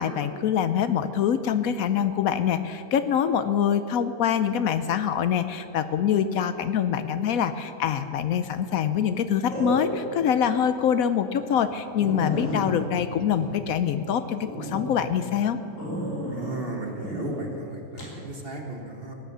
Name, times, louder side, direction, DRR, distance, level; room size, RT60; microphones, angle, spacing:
voice 1, 0.0-15.6, left 8 dB, 70° left, 11 dB, 0.9 m, -25 dB
sound 1, 7.9-8.3 9.5-10.3 10.7-10.8 11.3-11.4 11.6-11.7 12.0-14.0 14.4-14.9 15.8-16.6 17.0-17.4 18.0-18.2, equal, 50° left, 3.7 m, -32 dB
voice 2, 16.3-19.1, right 2 dB, 35° right, 2 dB, 1.4 m, -35 dB
17.5 x 8.9 x 6.7 m, 2.8 s
omnidirectional pair, 1.8 m